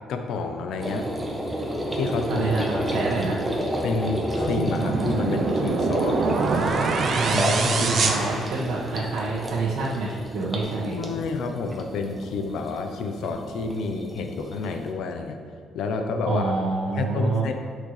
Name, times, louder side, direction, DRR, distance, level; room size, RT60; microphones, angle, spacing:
voice 1, 0.1-1.1 1.9-2.5 2.8-2.9 3.8-6.2 10.8-15.4 15.7-16.5 17.0-17.5, left 4 dB, 65° left, 5 dB, 0.8 m, -29 dB
sound 1, 0.8-14.9, equal, 5° right, 1.0 m, -31 dB
voice 2, 2.3-3.4 7.1-11.0 16.3-17.5, right 3 dB, 85° right, -7 dB, 1.5 m, -27 dB
sound 2, 4.4-4.7 5.7-8.5, equal, 35° left, 2.1 m, -34 dB
sound 3, 4.5-9.1, right 3 dB, 40° right, 0.7 m, -24 dB
12.0 x 6.6 x 3.3 m, 2.2 s
cardioid pair, 170°, 0 cm